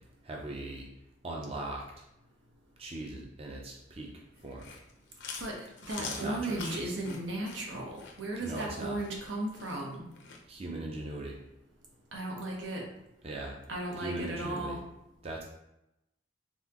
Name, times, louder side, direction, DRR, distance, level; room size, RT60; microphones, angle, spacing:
voice 1, 0.2-0.9 1.2-1.8 2.8-4.1 4.4-4.7 6.0-6.9 8.4-9.0 10.5-11.4 13.2-13.6 14.0-14.8 15.2-15.4, right 2 dB, 30° right, -1 dB, 0.6 m, -39 dB
Chewing mastication, 4.4-10.4, left 5 dB, 65° left, 0.7 m, -44 dB
voice 2, 5.4-10.1 12.1-12.8 13.7-14.8, right 1 dB, 80° right, -1 dB, 1.1 m, -36 dB
4.1 x 3.7 x 2.9 m, 0.86 s
head